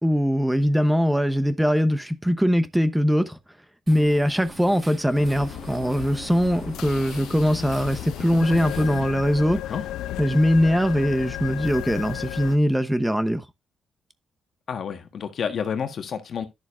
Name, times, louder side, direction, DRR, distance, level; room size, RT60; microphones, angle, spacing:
voice 1, 0.0-3.4 3.9-9.6 10.2-13.4, equal, 5° right, 0.9 m, -21 dB
Spell charge loop, 3.9-9.0, right 2 dB, 40° right, 4.1 m, -43 dB
sound 1, 5.1-12.6, left 13 dB, 90° left, 0.5 m, -34 dB
voice 2, 9.5-9.8 14.7-16.5, left 7 dB, 60° left, 1.4 m, -30 dB
11.0 x 6.8 x 2.5 m
cardioid pair, 75°, 0 cm